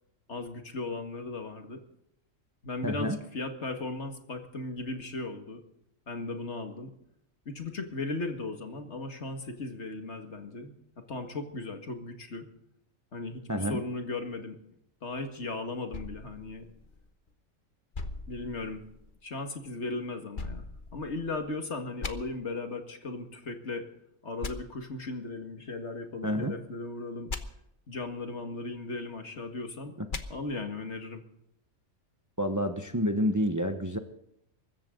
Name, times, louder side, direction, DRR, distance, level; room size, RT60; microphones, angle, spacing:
voice 1, 0.3-1.8 2.6-5.6 6.1-6.9 7.5-12.5 13.1-14.6 15.0-16.7 18.3-18.8 19.2-20.7 20.9-23.9 24.2-27.3 27.9-30.0 30.3-31.2, left 3 dB, 55° left, 5 dB, 2.2 m, -37 dB
voice 2, 2.8-3.2 13.5-13.8 26.2-26.6 32.4-34.0, equal, 15° right, 7 dB, 1.0 m, -28 dB
sound 1, 15.9-17.3 17.9-19.2 20.3-21.5 22.0-22.1 24.4-24.5 27.3-27.4 30.1-30.2, left 3 dB, 40° left, 1.2 m, -39 dB
23.5 x 14.0 x 3.9 m, 0.76 s
omnidirectional pair, 1.4 m